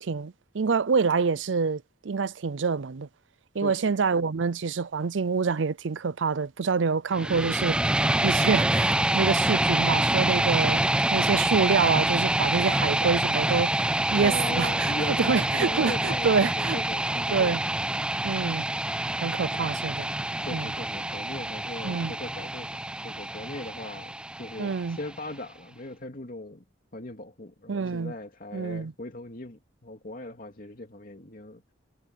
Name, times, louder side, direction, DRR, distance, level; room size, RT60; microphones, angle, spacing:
voice 1, 0.0-3.1 3.5-7.9 8.2-16.8 17.3-17.6 18.2-18.7 19.2-20.1 20.5-20.7 21.8-22.1 24.6-25.0 27.7-28.1 28.5-28.9, right 5 dB, 85° right, 0.6 m, -27 dB
sound 1, 7.1-25.1, right 1 dB, 5° right, 0.4 m, -26 dB
voice 2, 14.2-17.6 20.4-22.7 23.0-26.6 26.9-31.6, left 2 dB, 50° left, 2.6 m, -39 dB
head